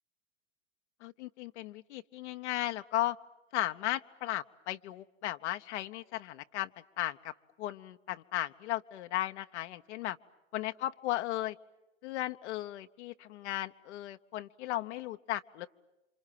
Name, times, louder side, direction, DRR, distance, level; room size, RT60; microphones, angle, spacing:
voice 1, 1.0-3.2 3.5-6.7 7.0-7.3 7.6-10.2 10.5-11.6 12.0-15.7, left 14 dB, 60° left, 7 dB, 1.0 m, -36 dB
29.5 x 26.5 x 7.6 m, 1.0 s
hypercardioid pair, 105°, 38 cm